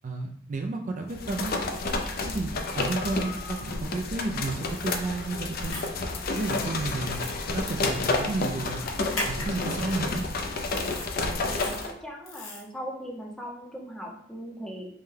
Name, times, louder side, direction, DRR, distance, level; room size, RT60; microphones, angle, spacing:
voice 1, 0.0-1.5 2.2-5.8 6.3-8.8 9.3-10.2, right 3 dB, 40° right, 3 dB, 0.3 m, -32 dB
sound 1, 1.1-11.9, left 3 dB, 50° left, 0.4 m, -30 dB
sound 2, 4.4-10.0, left 1 dB, 70° left, 1.3 m, -49 dB
sound 3, 4.7-5.0 5.6-5.9 6.3-6.6 7.1-7.3 9.1-9.5 10.1-10.2 10.7-11.1 11.5-11.9 12.2-12.6, left 2 dB, 90° left, 1.1 m, -37 dB
voice 2, 11.4-14.9, equal, 5° left, -1 dB, 0.6 m, -39 dB
5.3 x 2.2 x 3.3 m, 0.69 s
head